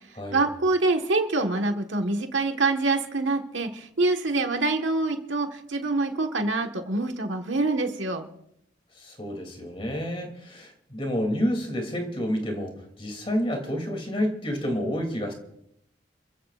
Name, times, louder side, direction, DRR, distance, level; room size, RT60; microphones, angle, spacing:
voice 1, 0.3-8.3, right 3 dB, 90° right, 4 dB, 1.5 m, -25 dB
voice 2, 9.0-12.7 13.0-15.3, equal, 30° left, 3 dB, 2.8 m, -29 dB
28.5 x 15.0 x 2.5 m, 0.74 s
head